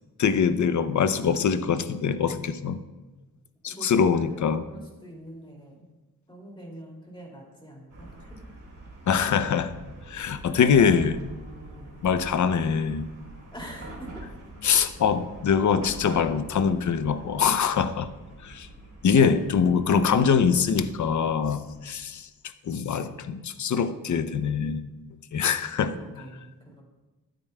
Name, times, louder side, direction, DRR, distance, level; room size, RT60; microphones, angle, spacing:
voice 1, 0.2-2.8 3.6-4.6 9.1-9.7 10.1-11.2 12.0-13.1 14.6-18.1 18.4-18.7 19.0-22.3 22.7-24.9 25.3-25.9, left 6 dB, 55° left, 12 dB, 0.6 m, -23 dB
voice 2, 3.6-5.9 6.3-8.4 13.5-14.2 25.9-26.8, right 1 dB, 15° left, -2 dB, 2.5 m, -44 dB
Chatter / Car passing by / Traffic noise roadway noise, 7.9-22.2, right 1 dB, 55° right, 3.4 m, -45 dB
14.0 x 9.0 x 2.2 m, 1.1 s
wide cardioid pair, 135°, 35 cm